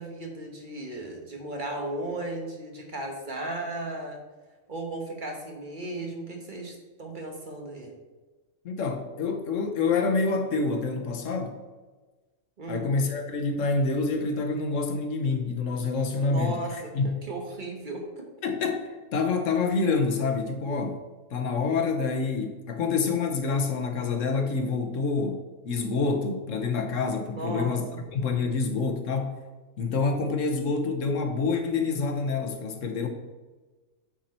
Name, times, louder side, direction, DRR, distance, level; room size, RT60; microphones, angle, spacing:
voice 1, 0.0-4.2 4.7-7.9 12.6-12.9 16.2-18.3 27.3-28.0, right 2 dB, 40° right, 1 dB, 1.3 m, -35 dB
voice 2, 8.6-11.5 12.7-17.2 18.4-21.0 21.3-27.8 28.1-29.4 29.8-33.1, left 4 dB, 75° left, 5 dB, 1.2 m, -27 dB
8.6 x 4.3 x 4.2 m, 1.3 s
omnidirectional pair, 1.3 m